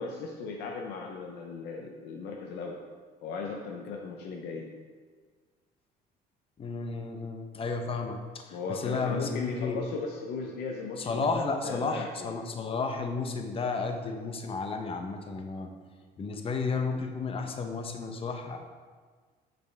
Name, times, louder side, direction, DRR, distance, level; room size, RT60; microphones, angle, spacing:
voice 1, 0.0-2.8 3.2-4.7 8.5-12.3, left 4 dB, 80° left, 0 dB, 0.7 m, -37 dB
voice 2, 6.6-8.2 8.7-9.8 11.0-15.7 16.2-18.6, left 4 dB, 35° left, 4 dB, 0.7 m, -32 dB
6.9 x 5.2 x 3.3 m, 1.5 s
cardioid pair, 110°, 17 cm